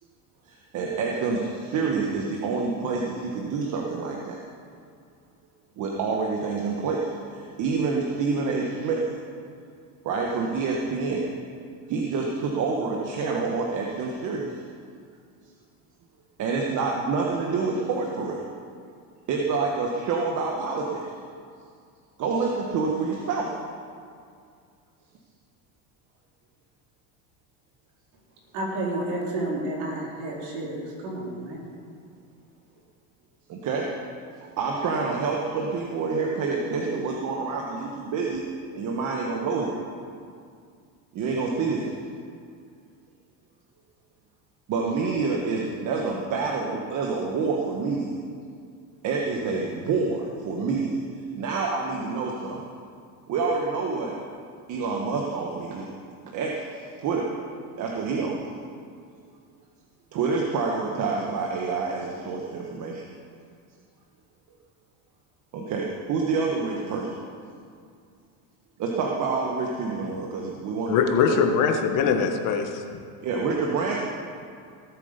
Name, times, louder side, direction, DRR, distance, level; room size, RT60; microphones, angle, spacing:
voice 1, 0.4-4.4 5.8-9.0 10.0-11.3 11.9-14.6 16.4-18.4 19.3-21.0 22.2-23.5 33.5-33.9 34.6-38.4 38.7-39.7 41.1-41.9 44.7-48.1 49.0-51.0 51.3-52.6 53.3-54.2 54.7-55.9 56.3-57.3 57.8-58.4 60.1-63.0 65.5-67.1 68.8-71.0 71.3-71.5 73.2-74.0, right 4 dB, 45° right, -1 dB, 1.4 m, -27 dB
voice 2, 28.5-31.6, right 1 dB, 65° right, -3 dB, 4.1 m, -31 dB
voice 3, 70.9-73.0, left 6 dB, 50° left, 4 dB, 1.3 m, -22 dB
17.5 x 8.1 x 5.2 m, 2.2 s
cardioid pair, 135°, 42 cm